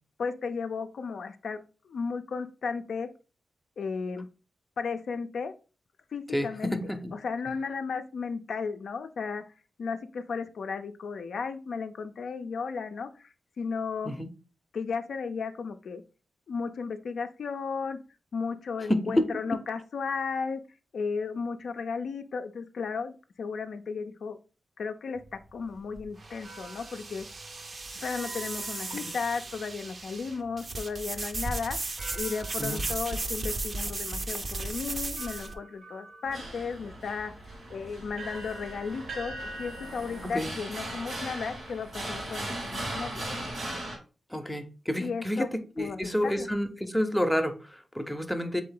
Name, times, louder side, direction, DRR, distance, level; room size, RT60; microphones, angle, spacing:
voice 1, 0.2-1.6 1.9-3.1 3.8-4.3 4.8-5.5 6.1-6.7 7.2-9.4 9.8-13.3 13.6-14.1 14.7-16.0 16.5-18.0 18.3-20.6 20.9-24.4 24.8-27.3 28.0-31.8 32.2-37.3 37.7-43.5 45.0-45.5 45.8-46.5, left 5 dB, 75° left, 7 dB, 0.4 m, -34 dB
voice 2, 6.3-7.1 14.1-14.3 18.9-19.4 28.9-29.0 32.6-32.8 40.2-40.5 44.3-48.6, equal, 5° left, 6 dB, 0.6 m, -29 dB
sound 1, 25.2-35.5, right 2 dB, 45° right, 0.5 m, -36 dB
sound 2, 26.4-29.9 32.0-33.5 34.2-34.3 35.2-42.0, right 2 dB, 70° right, 0.9 m, -47 dB
sound 3, 36.2-44.0, right 1 dB, 90° right, 2.0 m, -38 dB
3.8 x 3.5 x 3.7 m, 0.34 s
wide cardioid pair, 90°, 0 cm